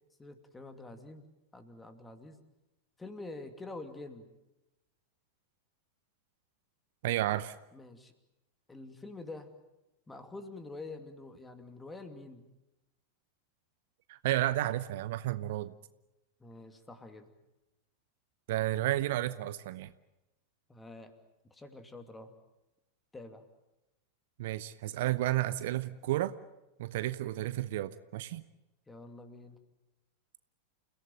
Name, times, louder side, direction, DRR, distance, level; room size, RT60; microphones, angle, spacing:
voice 1, 0.2-1.3 1.5-2.4 3.0-4.3 7.3-7.4 7.7-8.1 8.7-9.5 10.1-12.4 16.4-17.3 20.7-21.1 21.4-22.3 23.1-23.4 28.9-29.6, left 2 dB, 10° left, 8 dB, 2.6 m, -46 dB
voice 2, 7.0-7.5 14.1-15.7 18.5-19.9 24.4-26.3 26.8-28.4, right 15 dB, 55° right, 16 dB, 0.8 m, -32 dB
29.5 x 17.0 x 9.0 m, 0.97 s
figure-of-eight pair, 90°, 0 cm